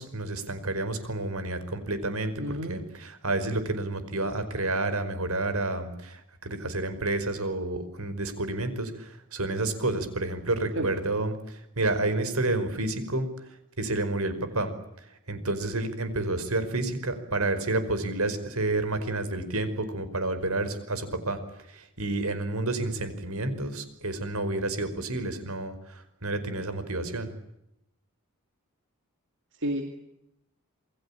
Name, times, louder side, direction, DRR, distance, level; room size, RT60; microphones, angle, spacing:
voice 1, 0.0-14.7 15.0-27.4, right 2 dB, 75° right, 11 dB, 5.1 m, -30 dB
voice 2, 2.4-2.8 10.8-10.9 29.6-30.0, right 1 dB, 55° right, 5 dB, 2.5 m, -31 dB
28.0 x 21.5 x 8.7 m, 0.83 s
head